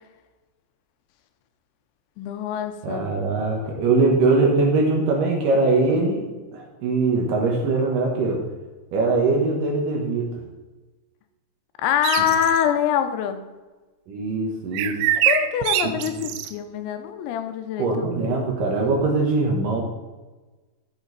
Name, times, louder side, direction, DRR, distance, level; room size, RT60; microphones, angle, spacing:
voice 1, 2.2-3.1 11.8-13.4 15.3-18.2, left 9 dB, 80° left, 7 dB, 3.1 m, -24 dB
voice 2, 2.8-6.2 6.5-8.4 8.9-10.2 14.1-15.0 15.8-16.3 17.8-19.8, right 3 dB, 65° right, 0 dB, 2.3 m, -22 dB
sound 1, 12.0-12.6 14.7-16.5, right 11 dB, 80° right, 2.5 m, -23 dB
13.5 x 5.6 x 4.1 m, 1.2 s
omnidirectional pair, 5.3 m